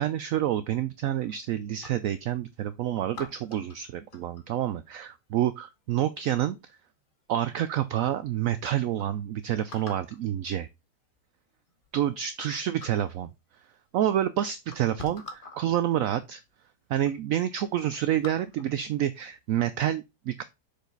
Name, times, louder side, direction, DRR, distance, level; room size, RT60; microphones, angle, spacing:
voice 1, 0.0-6.6 7.3-10.7 11.9-13.3 13.9-16.4 16.9-20.4, right 11 dB, 70° right, 0.8 m, -28 dB
sound 1, 1.2-2.2 3.1-4.6 6.2-6.6 7.3-7.4 7.6-8.2 8.7-8.8 9.0-9.1 9.7-10.2 11.2-11.3 11.7-12.5 12.8-13.2 14.1-14.2 14.6-15.6 16.5-16.6 16.9-17.2 17.5-18.8 19.3-19.5, left 2 dB, 35° left, 1.2 m, -46 dB
6.6 x 5.1 x 3.9 m
omnidirectional pair, 1.8 m